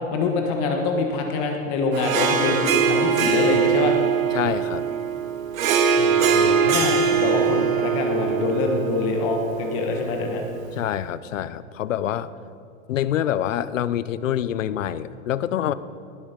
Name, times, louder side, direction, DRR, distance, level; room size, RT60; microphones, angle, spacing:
voice 1, 0.1-3.9 6.0-10.4, left 3 dB, 25° left, 3 dB, 1.3 m, -25 dB
Harp, 1.9-10.6, right 7 dB, 80° right, 1.7 m, -22 dB
voice 2, 4.3-4.8 10.7-12.3 12.9-15.7, left 11 dB, 70° left, 15 dB, 0.8 m, -26 dB
19.0 x 10.5 x 5.2 m, 2.5 s
supercardioid pair, 175°, 40 cm